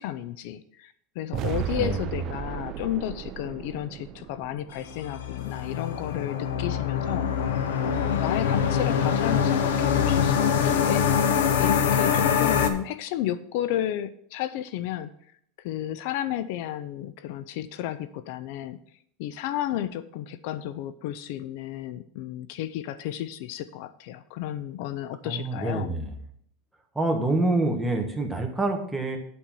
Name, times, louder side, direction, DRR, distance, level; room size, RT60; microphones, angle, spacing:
voice 1, 0.0-11.1 11.6-15.1 15.6-18.8 19.2-25.9, left 12 dB, 60° left, 14 dB, 0.4 m, -32 dB
sound 1, 1.3-5.5, right 10 dB, 40° right, 0.5 m, -35 dB
sound 2, 4.8-12.7, left 7 dB, 85° left, 0.8 m, -24 dB
voice 2, 25.2-26.1 26.9-29.2, right 2 dB, 5° right, 3 dB, 1.2 m, -26 dB
8.3 x 4.4 x 6.9 m, 0.67 s
supercardioid pair, 150°, 0 cm